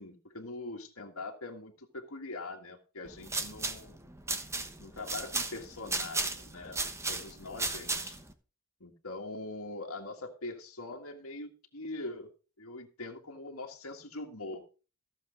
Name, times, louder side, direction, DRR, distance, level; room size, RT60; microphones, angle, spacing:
voice 1, 0.0-4.0 4.8-6.8 7.1-8.2 8.8-12.3 12.6-14.6, left 2 dB, 70° left, 0 dB, 1.8 m, -42 dB
sound 1, 3.1-8.3, right 3 dB, 15° right, 1.1 m, -35 dB
15.0 x 7.2 x 5.1 m, 0.35 s
head